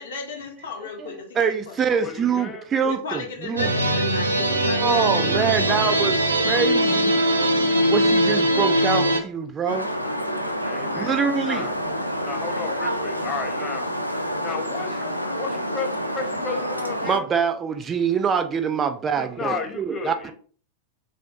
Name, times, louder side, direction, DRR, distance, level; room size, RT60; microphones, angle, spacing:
voice 1, 0.0-1.8 2.8-6.6, left 5 dB, 65° left, 0.8 m, -35 dB
voice 2, 1.0-3.7 4.8-6.2 6.4-7.3 7.9-9.9 10.9-11.7 17.0-20.3, right 6 dB, 25° right, 0.3 m, -25 dB
voice 3, 1.9-2.6 10.6-11.7 12.2-13.9 14.4-17.3 19.4-20.3, left 5 dB, 25° left, 0.7 m, -33 dB
sound 1, 3.6-9.2, right 1 dB, 80° right, 0.5 m, -21 dB
sound 2, 9.7-17.2, equal, 90° left, 0.3 m, -28 dB
3.2 x 2.6 x 2.7 m
figure-of-eight pair, 90°, 0 cm